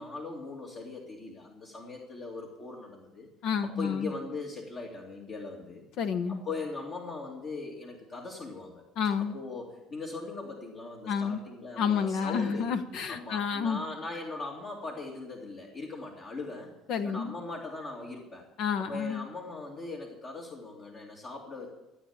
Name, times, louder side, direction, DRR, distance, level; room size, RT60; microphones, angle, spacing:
voice 1, 0.0-3.3 3.6-5.8 6.3-8.8 9.3-12.7 13.1-16.7 17.0-18.5 18.8-21.7, left 3 dB, 50° left, -2 dB, 2.3 m, -40 dB
voice 2, 3.4-4.1 6.0-6.4 9.0-9.3 11.1-11.4 11.8-13.8 16.9-17.4 18.6-19.3, left 6 dB, 70° left, 9 dB, 0.9 m, -29 dB
14.5 x 8.3 x 7.2 m, 0.95 s
supercardioid pair, 95°, 0 cm